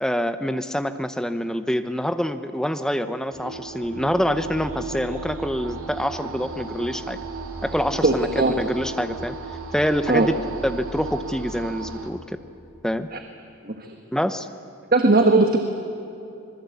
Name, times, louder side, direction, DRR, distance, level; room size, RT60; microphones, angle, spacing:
voice 1, 0.0-7.2 7.6-8.3 8.6-9.4 9.7-10.4 10.6-12.2 12.8-13.1 14.1-14.5, equal, 5° left, 9 dB, 0.8 m, -25 dB
sound 1, 3.3-12.1, right 4 dB, 85° right, 2.6 m, -35 dB
voice 2, 8.0-8.5 10.1-10.3 13.1-13.2 13.6-13.9 14.9-15.6, right 2 dB, 45° right, 5 dB, 1.3 m, -18 dB
26.0 x 21.0 x 8.3 m, 2.7 s
head